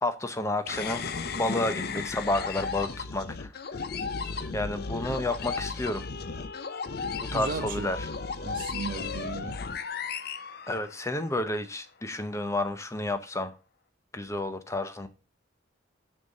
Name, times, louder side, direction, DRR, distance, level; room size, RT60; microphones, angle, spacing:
voice 1, 0.0-1.1 1.4-3.7 4.5-6.0 7.3-8.1 10.7-13.5 14.1-15.1, left 2 dB, 15° left, 0.7 m, -30 dB
sound 1, 0.7-11.3, left 4 dB, 50° left, 0.6 m, -35 dB
voice 2, 7.3-7.9 8.4-9.6, right 4 dB, 45° right, 0.4 m, -35 dB
6.7 x 5.5 x 6.5 m
head